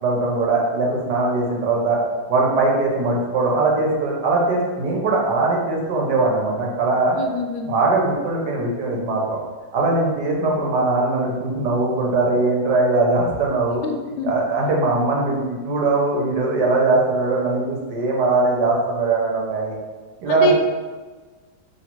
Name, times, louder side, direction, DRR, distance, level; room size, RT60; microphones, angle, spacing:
voice 1, 0.0-2.0 2.3-7.2 7.6-9.4 9.7-13.8 14.2-19.7 20.2-20.5, right 3 dB, 65° right, -2 dB, 1.3 m, -20 dB
voice 2, 7.1-7.7 13.8-14.3 20.3-20.6, left 2 dB, 80° left, 3 dB, 1.2 m, -24 dB
3.0 x 2.8 x 4.4 m, 1.3 s
omnidirectional pair, 2.1 m